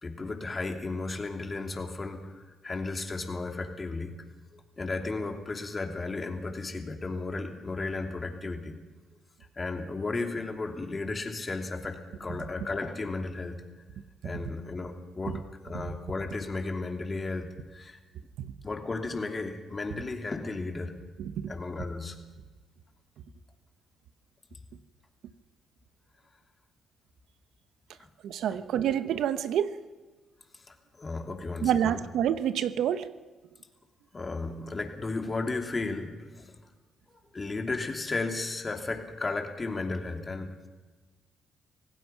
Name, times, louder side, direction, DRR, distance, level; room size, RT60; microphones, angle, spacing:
voice 1, 0.0-4.2 4.5-8.8 9.6-13.6 14.2-18.0 18.6-21.0 21.5-22.2 28.0-28.1 28.5-28.6 30.7-32.1 34.1-36.6 37.3-40.7, left 3 dB, 25° left, 4 dB, 3.0 m, -34 dB
voice 2, 21.2-21.5 28.2-29.7 31.6-33.1, right 10 dB, 80° right, 12 dB, 1.0 m, -28 dB
26.5 x 17.5 x 5.9 m, 1.3 s
cardioid pair, 90°, 0 cm